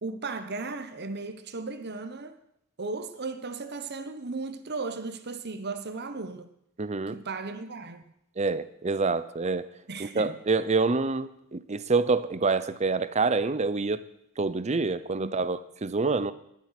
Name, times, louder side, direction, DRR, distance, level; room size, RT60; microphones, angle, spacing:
voice 1, 0.0-2.4 2.8-6.5 7.1-8.0 9.9-10.4 15.2-15.4, right 3 dB, 50° right, 1.1 m, -36 dB
voice 2, 6.8-7.2 8.4-9.7 10.0-14.0 14.4-16.3, right 4 dB, 30° right, 0.6 m, -27 dB
20.0 x 7.6 x 5.9 m
head